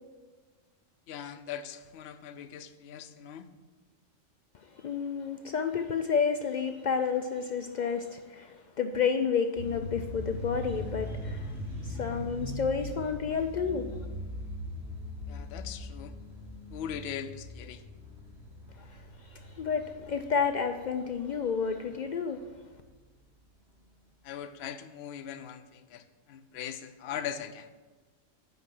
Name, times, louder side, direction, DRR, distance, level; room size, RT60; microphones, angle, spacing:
voice 1, 1.1-3.5 15.3-16.2 16.7-17.8 24.2-27.7, left 9 dB, 65° left, 0.7 m, -40 dB
voice 2, 4.7-11.5 11.8-13.9 18.8-22.5, left 6 dB, 90° left, 0.4 m, -30 dB
sound 1, 9.5-22.7, left 1 dB, 55° right, 2.6 m, -41 dB
8.1 x 5.4 x 7.6 m
omnidirectional pair, 1.4 m